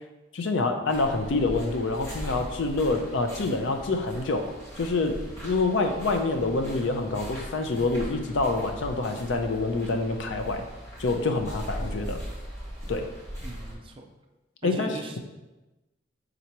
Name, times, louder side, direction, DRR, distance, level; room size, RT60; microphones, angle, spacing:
voice 1, 0.3-10.6 11.0-12.2 12.9-13.1 14.6-15.2, left 3 dB, 60° left, 5 dB, 0.5 m, -27 dB
sound 1, 0.9-13.7, equal, 15° left, 1.0 m, -40 dB
voice 2, 13.4-14.0 14.6-15.2, right 3 dB, 25° right, 4 dB, 0.3 m, -40 dB
3.8 x 2.9 x 4.5 m, 1.1 s
head